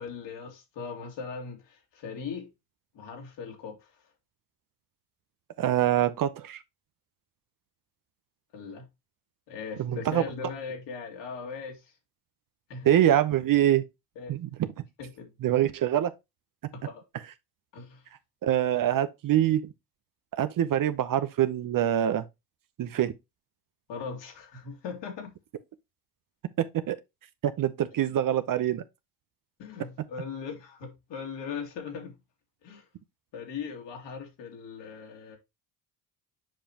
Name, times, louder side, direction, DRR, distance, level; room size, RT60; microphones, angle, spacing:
voice 1, 0.0-2.5 2.9-3.8 8.5-8.9 9.5-11.8 12.7-12.9 14.2-14.3 15.0-15.3 16.7-17.0 17.7-18.0 23.9-25.3 29.6-32.2 32.6-32.9 33.3-35.4, left 5 dB, 60° left, 2.5 m, -39 dB
voice 2, 5.6-6.6 9.8-10.2 12.8-13.8 14.3-14.7 15.4-16.1 18.4-19.7 20.3-22.2 22.8-23.1 26.6-27.0 27.4-28.8, right 11 dB, 40° right, 0.8 m, -24 dB
7.4 x 5.0 x 2.9 m
hypercardioid pair, 65°, 49 cm